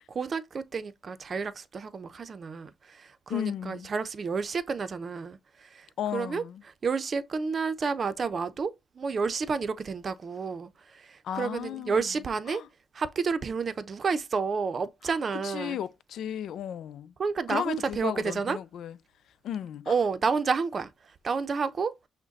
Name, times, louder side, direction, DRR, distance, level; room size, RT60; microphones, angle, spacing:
voice 1, 0.1-5.9 6.1-6.4 6.8-12.6 12.9-15.8 17.2-18.6 19.9-20.9 21.2-21.9, right 5 dB, 40° right, 0.6 m, -30 dB
voice 2, 3.3-3.9 6.0-6.6 11.2-12.1 12.5-12.7 15.0-17.1 17.5-19.0 19.4-19.9, left 10 dB, 70° left, 0.4 m, -35 dB
6.2 x 2.2 x 3.9 m
cardioid pair, 90°, 0 cm